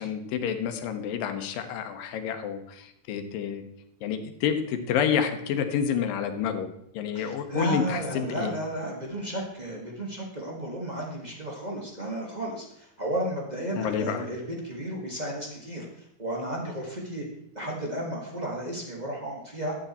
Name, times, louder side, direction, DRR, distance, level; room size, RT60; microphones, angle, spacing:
voice 1, 0.0-3.6 4.0-8.5 13.8-14.3, left 8 dB, 80° left, 6 dB, 2.7 m, -29 dB
voice 2, 7.1-17.2 17.5-19.8, right 1 dB, 40° right, -1 dB, 0.6 m, -33 dB
12.0 x 8.0 x 4.3 m, 0.77 s
omnidirectional pair, 4.0 m